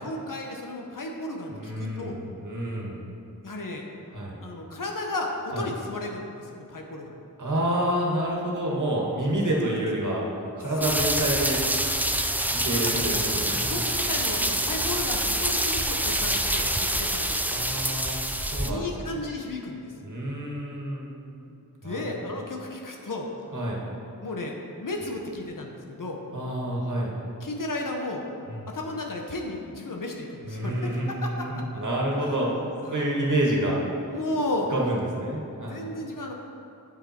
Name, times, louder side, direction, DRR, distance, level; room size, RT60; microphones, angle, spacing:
voice 1, 0.0-2.2 3.4-3.8 4.4-7.2 10.8-11.1 12.7-13.1 13.7-17.5 18.6-19.9 21.5-23.3 24.2-24.5 24.8-26.2 27.4-28.2 28.7-31.6 32.2-32.6 32.8-33.2 34.1-34.7 35.6-36.3, left 2 dB, 65° left, 1 dB, 1.1 m, -34 dB
voice 2, 1.5-3.0 4.1-4.4 5.5-5.6 7.4-10.3 10.5-11.6 12.6-13.8 17.5-19.2 20.0-21.1 21.8-22.3 23.5-23.8 26.3-27.1 28.5-28.6 30.4-32.6 32.9-33.8 34.7-35.9, right 1 dB, 60° right, -3 dB, 1.8 m, -28 dB
sound 1, 10.8-18.7, right 1 dB, 5° right, 0.4 m, -26 dB
8.9 x 6.9 x 4.4 m, 2.7 s
wide cardioid pair, 85°, 35 cm